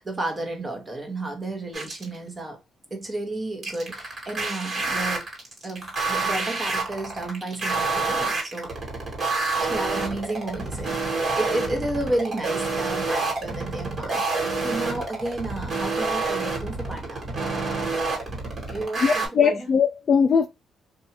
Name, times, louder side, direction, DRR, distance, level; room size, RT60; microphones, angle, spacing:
voice 1, 0.0-2.6 2.9-5.3 5.6-8.7 9.6-17.2 18.7-19.7, right 2 dB, 25° right, 1.0 m, -32 dB
sound 1, 1.7-2.2 3.6-19.3, right 3 dB, 40° right, 1.5 m, -27 dB
voice 2, 19.0-20.5, left 6 dB, 50° left, 0.3 m, -20 dB
2.7 x 2.3 x 2.8 m
cardioid pair, 90°, 0 cm